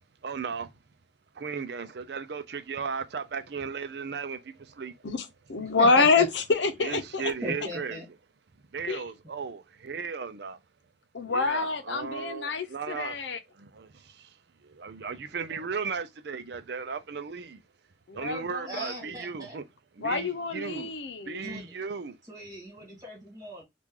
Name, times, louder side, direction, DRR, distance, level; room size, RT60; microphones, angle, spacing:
voice 1, 0.2-0.7 1.3-5.0 6.8-8.0 8.7-10.6 11.3-14.4 14.6-17.6 18.1-19.6 20.0-20.9 21.3-22.2, right 5 dB, 65° right, 0.5 m, -36 dB
voice 2, 5.0-7.3 8.9-9.0 11.1-13.4 18.1-18.7 20.0-21.4, left 4 dB, 85° left, 0.7 m, -26 dB
voice 3, 5.6-6.3 7.4-8.1 15.5-15.7 18.7-19.6 20.7-20.9 21.3-21.7 22.3-23.6, equal, 20° right, 2.0 m, -38 dB
3.6 x 2.5 x 2.9 m
head